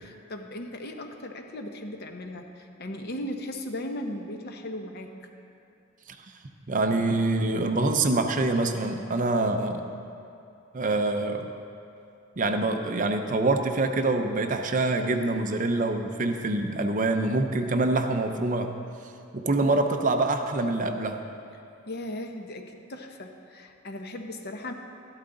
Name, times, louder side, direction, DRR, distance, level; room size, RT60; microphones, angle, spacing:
voice 1, 0.0-5.1 21.9-24.7, left 1 dB, 50° left, 4 dB, 0.9 m, -37 dB
voice 2, 6.7-9.8 10.7-11.5 12.4-18.8 19.3-21.2, right 2 dB, 40° right, 6 dB, 0.6 m, -25 dB
13.0 x 12.0 x 3.9 m, 2.6 s
head